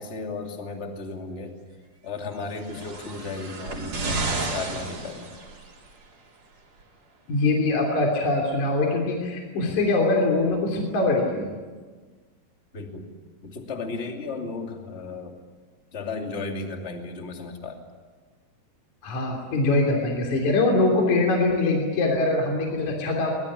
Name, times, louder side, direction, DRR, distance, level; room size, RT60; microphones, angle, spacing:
voice 1, 0.0-1.5 2.0-5.3 12.7-13.1 13.4-15.4 15.9-17.8, left 3 dB, 20° left, 3 dB, 2.0 m, -34 dB
sound 1, 2.5-5.9 6.8-6.9, right 3 dB, 45° right, 4.8 m, -32 dB
voice 2, 7.3-11.5 19.0-23.3, left 2 dB, 50° left, 1 dB, 4.3 m, -23 dB
23.5 x 21.5 x 9.8 m, 1.4 s
omnidirectional pair, 4.6 m